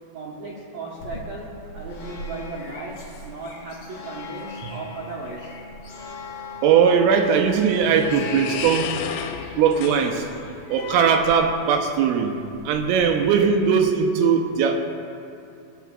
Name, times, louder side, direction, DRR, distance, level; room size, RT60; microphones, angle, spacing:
voice 1, 0.1-5.5, right 3 dB, 70° right, -6 dB, 2.1 m, -36 dB
sound 1, 1.0-13.4, left 2 dB, 70° left, 1.4 m, -41 dB
voice 2, 6.6-8.9 9.6-10.2 10.7-12.3 12.7-14.8, right 6 dB, 90° right, 4 dB, 3.3 m, -19 dB
sound 2, 6.8-11.8, left 7 dB, 85° left, 3.2 m, -34 dB
19.0 x 9.1 x 2.4 m, 2.6 s
omnidirectional pair, 5.7 m